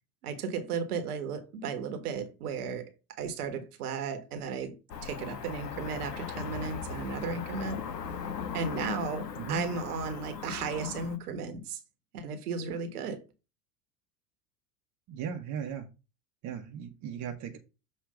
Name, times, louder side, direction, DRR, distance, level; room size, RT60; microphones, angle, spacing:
voice 1, 0.2-2.9 3.2-7.8 8.5-11.8 12.1-13.2, right 5 dB, 65° right, 1.4 m, -35 dB
Cricket / Motor vehicle (road), 4.9-11.2, left 6 dB, 80° left, 0.9 m, -38 dB
voice 2, 15.1-15.9 16.4-17.6, right 7 dB, 35° right, 1.2 m, -37 dB
6.7 x 3.2 x 4.8 m
figure-of-eight pair, 80°, 49 cm